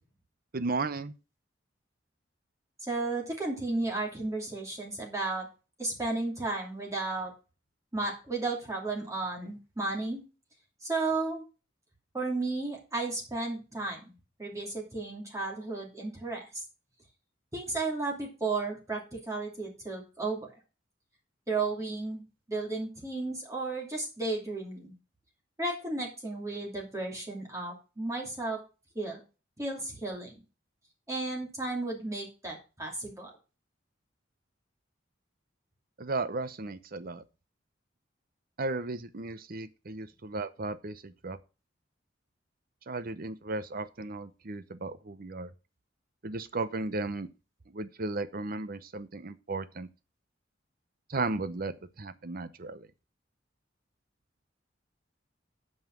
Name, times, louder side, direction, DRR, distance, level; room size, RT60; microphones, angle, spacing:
voice 1, 0.5-1.1 36.0-37.2 38.6-41.4 42.9-45.5 46.2-47.3 47.7-49.9 51.1-52.9, right 3 dB, 50° right, 0.8 m, -35 dB
voice 2, 2.9-5.5 5.8-7.3 7.9-10.2 10.8-11.4 12.1-14.1 14.4-16.5 17.5-20.5 21.5-22.2 22.5-24.9 25.6-28.6 28.9-29.2 29.6-30.4 31.1-33.3, right 3 dB, 15° right, 2.8 m, -33 dB
9.3 x 5.6 x 6.0 m
head